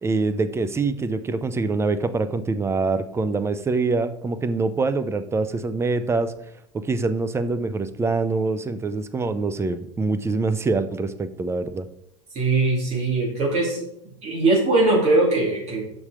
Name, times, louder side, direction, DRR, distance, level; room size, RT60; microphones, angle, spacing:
voice 1, 0.0-6.3 6.7-11.9, right 3 dB, 15° right, 11 dB, 0.6 m, -24 dB
voice 2, 12.3-13.8 14.2-16.0, right 2 dB, 40° right, -3 dB, 2.9 m, -21 dB
6.2 x 5.7 x 5.0 m, 0.77 s
hypercardioid pair, 100°, 17 cm